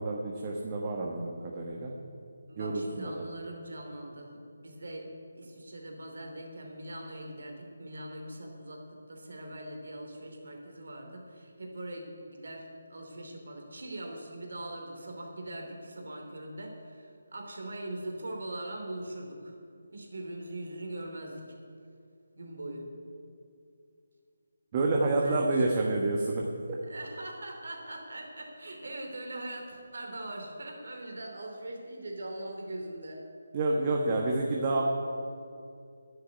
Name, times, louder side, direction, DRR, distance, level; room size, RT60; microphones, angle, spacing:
voice 1, 0.0-1.9 2.6-3.1 24.7-26.4 33.5-34.8, right 2 dB, 30° right, -1 dB, 1.3 m, -28 dB
voice 2, 2.5-19.6 19.9-21.6 22.4-22.9 25.2-25.7 26.9-33.2, right 1 dB, 70° right, 2 dB, 2.9 m, -41 dB
11.0 x 7.7 x 9.6 m, 2.4 s
figure-of-eight pair, 160°, 0 cm